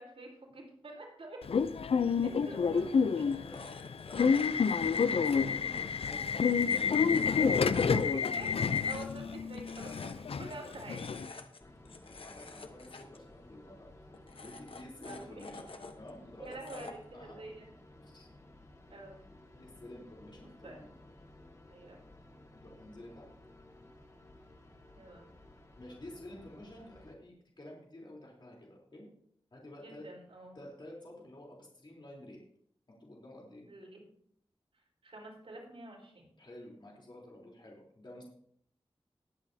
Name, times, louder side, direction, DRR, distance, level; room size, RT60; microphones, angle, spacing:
voice 1, 0.0-1.5 1.9-2.9 7.4-8.5 8.8-11.1 15.0-15.4 16.4-17.7 18.9-19.1 20.3-20.8 21.7-22.0 24.9-25.3 29.8-30.6 33.7-34.0 34.7-36.3, right 2 dB, 85° right, -2 dB, 4.3 m, -47 dB
Subway metro underground / Alarm, 1.4-11.3, left 6 dB, 90° left, 0.5 m, -29 dB
voice 2, 2.0-6.4 7.0-8.5 10.8-11.2 12.0-13.9 14.4-15.6 16.0-17.4 18.0-18.3 19.5-20.9 22.5-23.3 25.8-29.1 29.5-30.1 30.5-32.4 33.0-33.7 36.4-38.2, left 1 dB, 50° left, -3 dB, 3.6 m, -51 dB
sound 1, 2.5-17.1, left 3 dB, 70° left, 1.1 m, -51 dB
sound 2, 11.6-27.1, left 1 dB, 30° left, 1.8 m, -56 dB
20.0 x 8.3 x 2.8 m, 0.65 s
wide cardioid pair, 90°, 10 cm